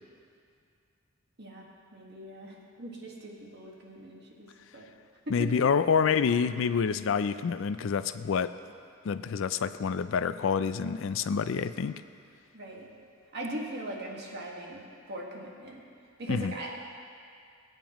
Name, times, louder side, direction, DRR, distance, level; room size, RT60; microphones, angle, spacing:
voice 1, 1.4-4.9 12.5-12.9 13.3-15.8 16.2-16.8, right 1 dB, 55° right, -2 dB, 1.7 m, -41 dB
voice 2, 5.3-8.5 9.0-12.0 16.3-16.5, left 6 dB, 70° left, 13 dB, 0.4 m, -27 dB
20.5 x 9.1 x 3.0 m, 2.3 s
head